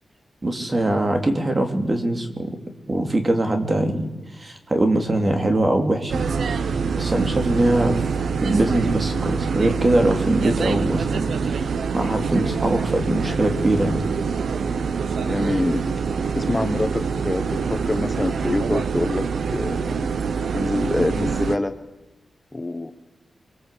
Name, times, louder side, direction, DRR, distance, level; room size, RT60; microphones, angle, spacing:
voice 1, 0.4-2.6 2.9-6.2 6.5-8.0 8.4-14.0, right 1 dB, 25° right, 5 dB, 3.0 m, -22 dB
sound 1, 6.1-21.6, right 5 dB, 80° right, 1.1 m, -25 dB
voice 2, 15.2-15.9 16.3-20.1 20.5-21.7 22.5-22.9, left 2 dB, 15° left, 8 dB, 1.2 m, -25 dB
24.0 x 24.0 x 8.4 m, 1.0 s
wide cardioid pair, 140°, 0 cm